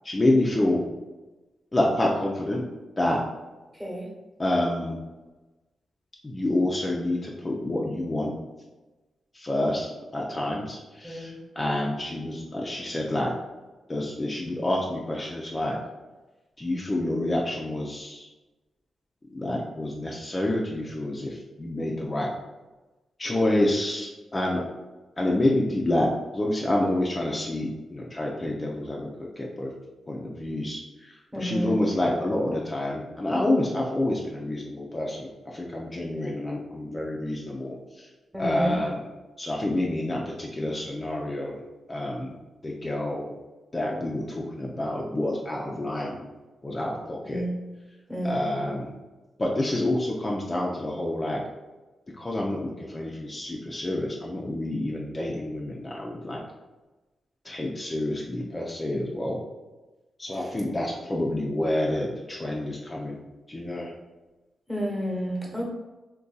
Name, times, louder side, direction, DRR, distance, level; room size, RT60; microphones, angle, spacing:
voice 1, 0.0-0.8 1.7-2.6 3.0-3.2 4.4-5.0 6.2-8.3 9.3-13.3 13.9-15.8 16.6-18.3 19.3-22.3 23.2-24.6 25.2-26.1 26.3-29.1 29.4-29.7 30.1-38.1 38.4-39.0 39.4-41.6 41.9-42.3 42.6-43.3 43.7-46.2 46.6-47.4 48.2-48.9 49.4-51.4 52.2-56.4 57.4-59.4 60.2-63.2 63.5-63.9, left 1 dB, 25° left, -2 dB, 0.4 m, -28 dB
voice 2, 3.7-4.1 11.0-11.4 31.3-31.8 38.3-38.8 47.2-47.5 48.1-48.4 60.3-60.5 64.7-65.7, equal, 10° right, -2 dB, 1.0 m, -30 dB
2.5 x 2.2 x 3.9 m, 1.1 s
cardioid pair, 65°, 0 cm